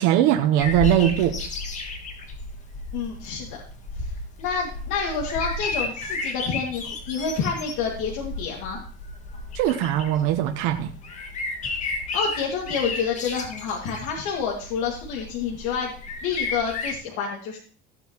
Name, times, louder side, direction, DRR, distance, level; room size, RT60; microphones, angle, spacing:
voice 1, 0.0-1.4 9.5-10.9, right 11 dB, 85° right, 4 dB, 1.0 m, -20 dB
sound 1, 0.6-16.9, left 3 dB, 35° left, 1.9 m, -33 dB
voice 2, 2.9-3.6 4.0-4.1 4.4-8.8 12.1-15.9 16.2-17.6, left 6 dB, 80° left, -1 dB, 2.3 m, -28 dB
15.5 x 9.0 x 3.1 m, 0.43 s
cardioid pair, 155°, 21 cm